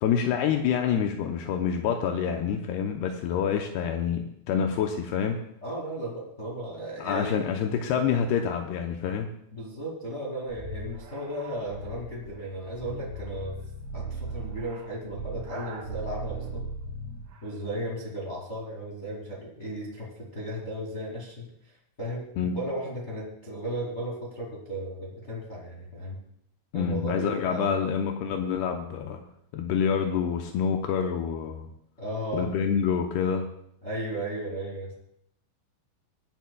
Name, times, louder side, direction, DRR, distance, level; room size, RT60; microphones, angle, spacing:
voice 1, 0.0-5.4 7.0-9.3 22.4-22.6 26.7-29.2 29.5-31.7 32.3-33.5, left 7 dB, 85° left, 3 dB, 2.3 m, -27 dB
voice 2, 5.6-7.4 9.5-13.5 13.9-16.6 17.4-21.5 22.0-26.2 26.7-27.8 32.0-32.5 33.8-34.9, right 1 dB, 35° left, -3 dB, 1.0 m, -35 dB
sound 1, 10.5-17.4, right 3 dB, 75° right, 4.6 m, -38 dB
24.5 x 10.5 x 2.3 m, 0.72 s
omnidirectional pair, 5.7 m